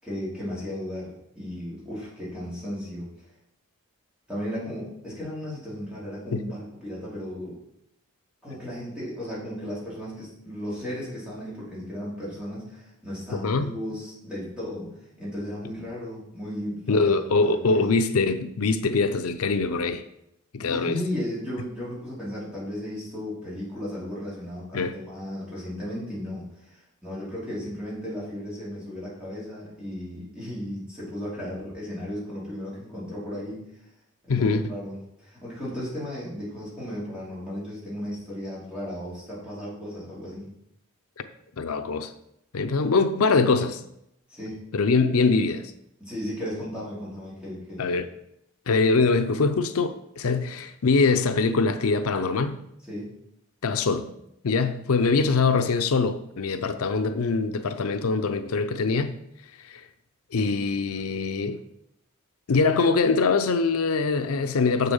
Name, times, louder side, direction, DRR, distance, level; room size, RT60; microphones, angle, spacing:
voice 1, 0.0-3.1 4.3-7.6 8.4-18.0 20.6-33.8 34.2-40.5 44.3-44.6 46.0-48.0 52.9-53.1, left 1 dB, 5° right, 3.7 m, -35 dB
voice 2, 13.3-13.7 16.9-20.0 20.5-21.0 24.7-24.9 34.3-34.6 41.6-42.1 42.5-43.8 44.7-45.7 47.8-48.1 48.7-52.6 53.6-54.1 54.4-59.2 59.6-59.8 60.3-61.6 62.5-64.9, left 4 dB, 85° left, 0.6 m, -23 dB
6.9 x 6.7 x 5.5 m
head